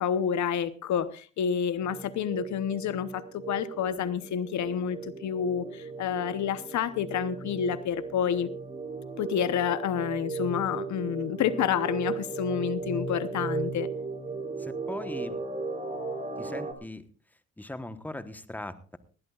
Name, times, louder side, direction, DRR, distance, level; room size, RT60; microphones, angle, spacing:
voice 1, 0.0-8.5 9.2-13.9, left 8 dB, 70° left, 14 dB, 0.9 m, -29 dB
sound 1, 1.8-16.7, right 3 dB, 25° right, 3.3 m, -36 dB
voice 2, 14.6-15.4 16.4-17.0 17.6-19.0, left 1 dB, 5° left, 11 dB, 1.2 m, -39 dB
20.0 x 15.5 x 2.4 m, 0.37 s
cardioid pair, 90°, 30 cm